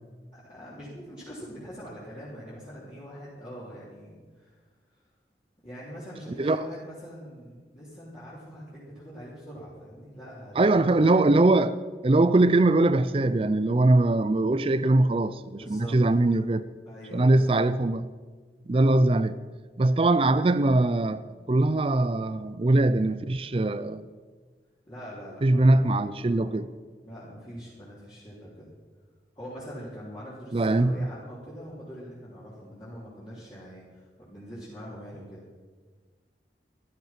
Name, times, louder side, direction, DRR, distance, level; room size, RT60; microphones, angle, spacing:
voice 1, 0.3-4.6 5.6-11.2 15.5-16.2 16.8-17.6 24.9-26.5 27.0-28.7 29.4-35.5, equal, 25° left, 3.7 m, -43 dB
voice 2, 10.6-11.8 12.0-16.7 17.1-18.1 18.7-19.4 19.8-21.2 21.5-24.1 25.4-26.7 30.5-31.1, right 2 dB, 30° right, 0.4 m, -22 dB
14.5 x 12.0 x 5.9 m
head